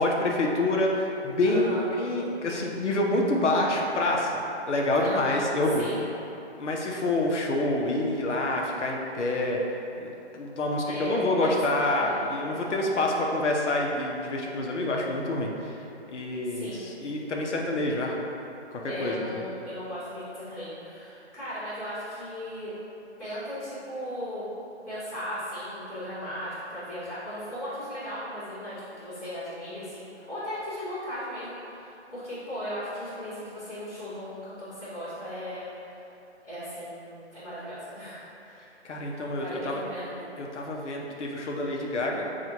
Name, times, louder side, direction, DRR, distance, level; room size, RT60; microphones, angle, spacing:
voice 1, 0.0-4.4 4.7-5.9 6.6-9.6 10.0-15.8 16.1-18.2 18.7-19.4 38.8-39.8 40.4-42.3, left 2 dB, 80° left, -1 dB, 0.7 m, -27 dB
voice 2, 1.4-1.9 5.0-5.5 5.8-6.0 10.8-11.5 11.9-13.1 16.4-16.8 18.9-22.7 23.2-24.5 24.8-35.7 36.4-38.7 39.3-40.1, equal, ahead, -23 dB, 0.8 m, -37 dB
5.9 x 2.4 x 2.9 m, 3.0 s
hypercardioid pair, 165°, 35 cm